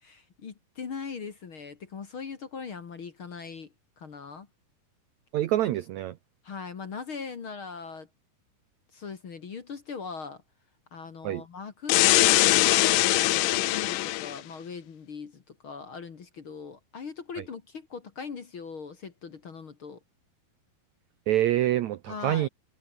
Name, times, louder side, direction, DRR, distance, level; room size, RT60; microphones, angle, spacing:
voice 1, 0.0-4.5 6.4-8.1 8.9-10.4 10.9-20.0 22.1-22.5, left 5 dB, 45° left, 2.1 m, -40 dB
voice 2, 5.3-6.1 11.2-11.4 21.3-22.5, right 13 dB, 85° right, 1.6 m, -26 dB
sound 1, 11.9-14.4, left 18 dB, 85° left, 1.8 m, -22 dB
omnidirectional pair, 4.5 m